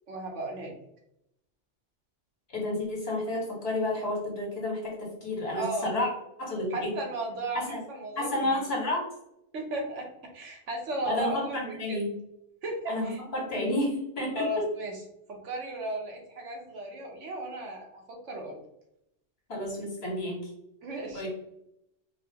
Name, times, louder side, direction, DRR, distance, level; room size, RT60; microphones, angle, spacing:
voice 1, 0.1-0.7 5.5-5.9 6.7-8.6 9.5-10.1 10.3-12.0 12.6-13.2 14.4-14.9 15.3-18.6 20.8-21.3, right 1 dB, 85° right, 1 dB, 1.4 m, -35 dB
voice 2, 2.5-6.1 6.4-6.9 7.5-7.8 8.2-9.0 11.1-12.2 12.9-14.6 19.5-20.5 21.1-21.3, left 1 dB, 55° left, -3 dB, 1.8 m, -31 dB
4.6 x 2.8 x 2.9 m, 0.79 s
omnidirectional pair, 1.2 m